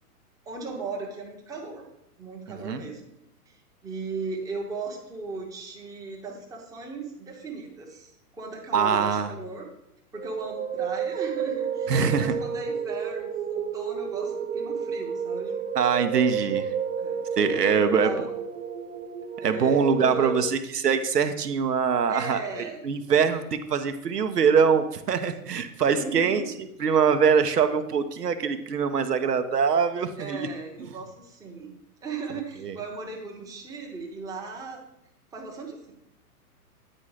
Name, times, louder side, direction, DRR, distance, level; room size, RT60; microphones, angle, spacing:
voice 1, 0.4-1.9 2.2-3.0 3.5-9.7 10.1-15.6 17.0-17.2 17.5-18.2 19.4-20.5 22.1-23.4 25.9-26.5 30.2-31.7 32.0-34.8 35.3-35.9, right 4 dB, 10° right, 0 dB, 0.9 m, -37 dB
voice 2, 8.7-9.3 11.9-12.3 15.7-16.7 17.4-18.1 19.4-22.4 22.8-26.4 26.8-30.5 32.6-32.7, right 6 dB, 85° right, 9 dB, 0.8 m, -23 dB
sound 1, 10.2-20.4, right 7 dB, 55° right, 0.9 m, -31 dB
8.8 x 4.3 x 4.8 m, 0.82 s
hypercardioid pair, 125°, 46 cm